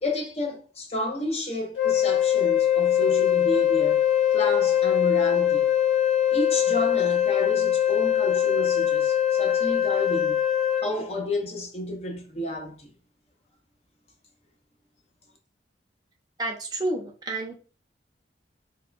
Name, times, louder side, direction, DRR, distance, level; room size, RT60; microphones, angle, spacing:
voice 1, 0.0-4.0 4.3-5.7 6.3-10.4 10.8-12.9, left 1 dB, 35° left, 0.7 m, -31 dB
Wind instrument woodwind instrument, 1.8-10.9, left 10 dB, 85° left, 0.5 m, -22 dB
voice 2, 16.4-17.5, right 2 dB, 20° right, 0.6 m, -30 dB
3.4 x 2.2 x 2.4 m
head